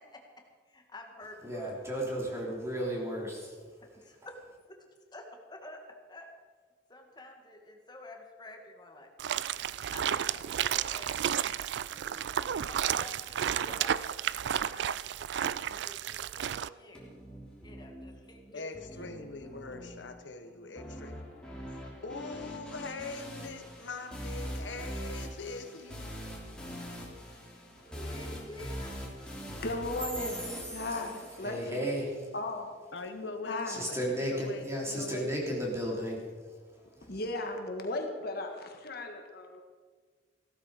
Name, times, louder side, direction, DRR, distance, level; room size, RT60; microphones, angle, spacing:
voice 1, 0.7-1.8 3.8-4.4 4.7-4.8 5.1-5.8 6.1-6.3 6.9-17.1 17.6-19.1 27.8-29.4, left 1 dB, 25° left, 3 dB, 2.0 m, -50 dB
voice 2, 1.4-3.6 30.5-31.0 31.4-32.3 33.7-37.2, equal, 15° right, -2 dB, 3.7 m, -35 dB
sound 1, 9.2-16.7, right 9 dB, 65° right, 0.4 m, -32 dB
sound 2, 16.9-31.9, equal, 5° left, 3.1 m, -43 dB
voice 3, 18.5-21.2 22.0-26.1 32.9-33.6 33.9-35.3, left 3 dB, 75° left, 7 dB, 1.1 m, -42 dB
voice 4, 29.6-31.9 32.3-32.7 33.4-33.9 37.1-39.6, left 2 dB, 60° left, 4 dB, 1.6 m, -36 dB
16.0 x 13.0 x 5.0 m, 1.5 s
head